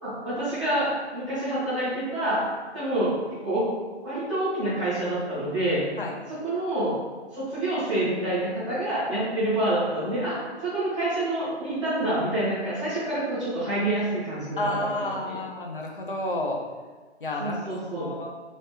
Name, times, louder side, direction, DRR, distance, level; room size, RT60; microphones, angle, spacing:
voice 1, 0.0-2.4 2.7-3.2 3.4-3.7 4.0-5.8 6.3-7.0 7.3-10.4 10.6-15.4 17.4-18.2, right 1 dB, 5° left, -13 dB, 0.8 m, -27 dB
voice 2, 14.6-16.6 17.2-17.6 18.0-18.3, left 1 dB, 50° left, 0 dB, 0.6 m, -30 dB
3.1 x 2.8 x 3.3 m, 1.3 s
figure-of-eight pair, 165°, 35 cm